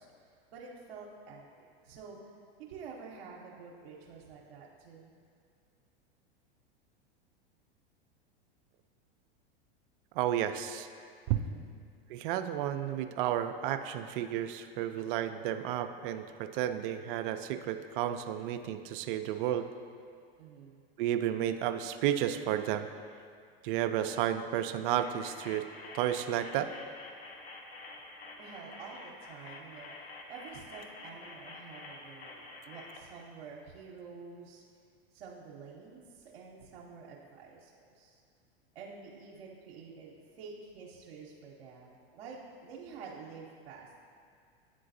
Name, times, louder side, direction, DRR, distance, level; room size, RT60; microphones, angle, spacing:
voice 1, 0.0-1.4 1.8-2.2 2.6-5.1 11.3-11.8 20.4-20.8 28.4-34.6 35.1-38.2 38.7-44.0, right 5 dB, 75° right, -4 dB, 0.8 m, -49 dB
voice 2, 10.2-10.9 11.3-11.4 12.1-19.6 21.0-22.9 23.6-25.6 25.9-26.7, right 11 dB, 55° right, 9 dB, 0.4 m, -32 dB
sound 1, 25.0-33.0, left 2 dB, 85° left, 0.7 m, -48 dB
9.6 x 3.8 x 2.6 m, 2.3 s
hypercardioid pair, 100°, 31 cm